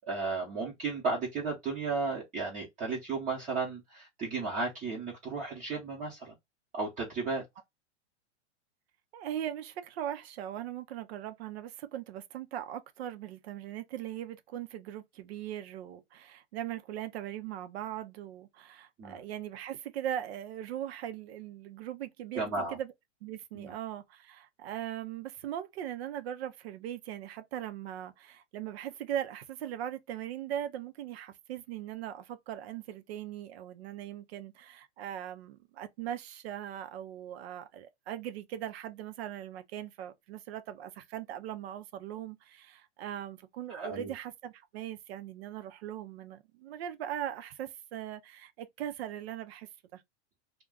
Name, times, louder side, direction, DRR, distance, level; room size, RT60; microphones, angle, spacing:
voice 1, 0.1-6.3 6.7-7.4 19.0-19.2 22.3-22.8 23.5-23.7 43.7-44.1, right 4 dB, 20° right, 0.8 m, -34 dB
voice 2, 9.1-22.9 23.2-50.0, right 11 dB, 60° right, 0.6 m, -40 dB
2.3 x 2.2 x 3.6 m
hypercardioid pair, 140°, 36 cm